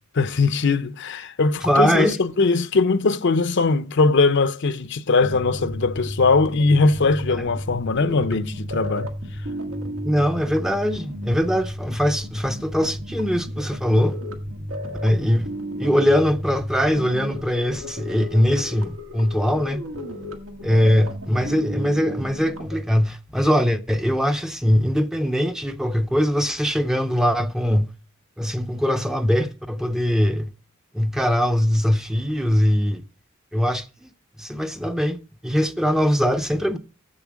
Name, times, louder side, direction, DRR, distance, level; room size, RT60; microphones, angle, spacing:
voice 1, 0.1-9.1, left 3 dB, 60° left, 0.6 m, -20 dB
voice 2, 1.6-2.2 10.0-14.2 15.0-15.5 15.8-19.8 20.6-27.9 28.4-30.5 30.9-33.0 33.5-34.1 34.4-35.2 35.4-36.8, equal, ahead, 0.6 m, -21 dB
sound 1, 5.2-22.8, equal, 80° right, 1.7 m, -33 dB
7.9 x 7.0 x 6.2 m
head